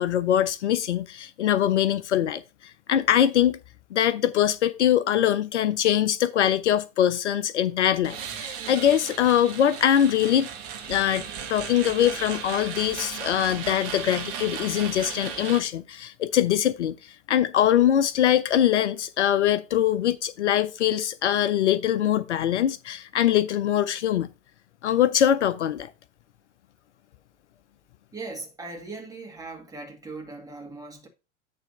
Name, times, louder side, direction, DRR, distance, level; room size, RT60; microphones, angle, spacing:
voice 1, 0.0-2.4 2.9-3.6 3.9-10.5 10.9-11.2 11.5-24.3 24.8-25.9, left 10 dB, 65° left, 0.6 m, -23 dB
sound 1, 8.0-15.6, right 7 dB, 45° right, 1.6 m, -36 dB
voice 2, 28.1-31.1, right 3 dB, 10° right, 2.0 m, -39 dB
9.0 x 3.3 x 5.4 m
figure-of-eight pair, 85°, 37 cm